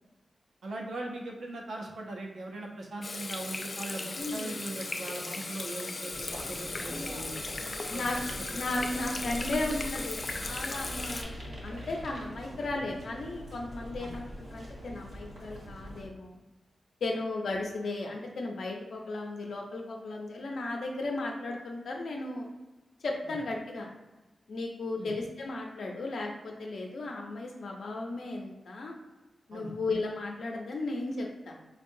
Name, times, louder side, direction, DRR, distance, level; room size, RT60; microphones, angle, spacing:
voice 1, 0.6-7.4 7.9-8.6 14.0-14.1 25.0-25.1 29.5-29.7, right 2 dB, 70° right, 0 dB, 0.6 m, -40 dB
Water tap faucet / Sink (filling or washing), 3.0-11.2, left 3 dB, 35° left, 0.3 m, -37 dB
voice 2, 4.1-4.5 7.9-8.2 8.5-16.4 17.0-22.5 23.0-23.9 24.5-28.9 29.5-31.6, left 2 dB, 75° left, 0 dB, 0.7 m, -35 dB
sound 1, 6.1-16.1, equal, 50° right, 1.1 m, -43 dB
4.6 x 2.3 x 2.6 m, 1.1 s
wide cardioid pair, 160°, 0 cm